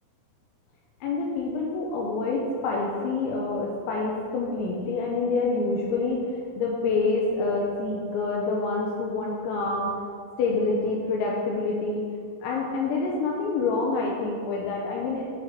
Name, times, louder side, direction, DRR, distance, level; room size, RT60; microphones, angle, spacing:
voice 1, 1.0-6.3 6.6-9.9 10.4-12.0 12.4-15.2, left 3 dB, 85° left, -2 dB, 2.6 m, -27 dB
8.3 x 3.1 x 6.4 m, 2.2 s
omnidirectional pair, 5.9 m